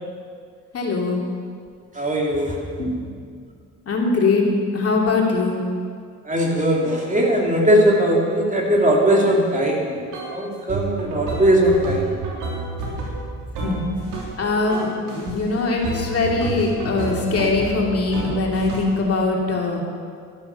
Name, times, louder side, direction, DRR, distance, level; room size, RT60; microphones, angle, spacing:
voice 1, 0.7-1.2 2.8-2.9 3.9-4.4 4.7-5.6 13.6-13.8 14.4-19.8, left 3 dB, 50° left, -1 dB, 2.8 m, -21 dB
voice 2, 1.9-2.6 6.3-10.0 10.3-12.0, equal, 25° right, -1 dB, 3.1 m, -19 dB
sound 1, 10.1-10.4 10.7-14.4 14.7-15.4 15.8-19.0, right 3 dB, 90° right, 3.2 m, -30 dB
12.5 x 11.5 x 6.9 m, 2.1 s
cardioid pair, 90°, 30 cm